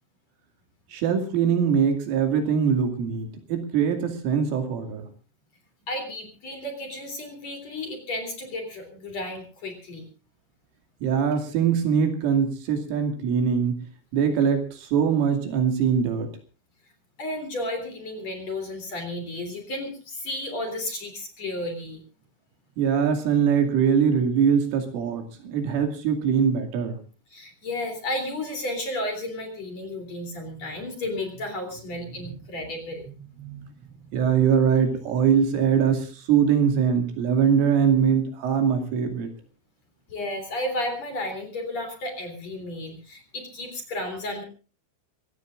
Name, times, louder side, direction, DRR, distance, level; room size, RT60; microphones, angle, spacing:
voice 1, 0.9-5.1 11.0-13.8 14.1-16.3 22.8-27.0 33.3-33.7 34.1-39.3, right 7 dB, 75° right, 5 dB, 5.0 m, -22 dB
voice 2, 5.9-10.1 17.2-22.0 27.3-33.0 40.1-44.4, left 1 dB, 35° left, 5 dB, 4.0 m, -33 dB
25.0 x 17.5 x 2.5 m, 0.35 s
omnidirectional pair, 5.8 m